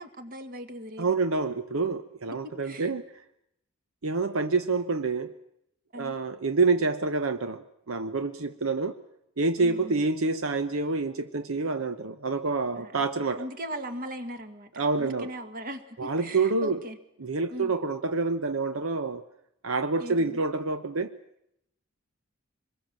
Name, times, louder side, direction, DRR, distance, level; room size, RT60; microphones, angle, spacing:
voice 1, 0.0-1.1 2.3-2.9 5.9-6.2 9.6-10.0 12.7-13.0 13.4-17.0 17.5-17.7 20.0-20.4, right 1 dB, 45° right, 8 dB, 2.0 m, -39 dB
voice 2, 1.0-3.0 4.0-5.3 5.9-8.9 9.4-13.5 14.8-15.3 16.0-16.8 17.2-19.2 19.6-21.1, right 3 dB, 80° right, 9 dB, 0.9 m, -27 dB
25.5 x 21.5 x 7.6 m, 0.79 s
head